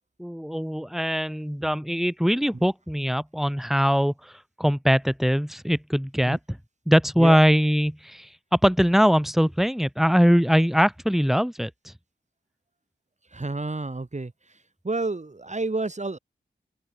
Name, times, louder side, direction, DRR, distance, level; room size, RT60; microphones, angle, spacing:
voice 1, 0.2-4.3 4.6-6.6 6.9-11.9, equal, ahead, 5.3 m, -22 dB
voice 2, 13.3-14.3 14.9-16.2, right 3 dB, 35° right, 5.4 m, -29 dB
open air
cardioid pair, 55°, 19 cm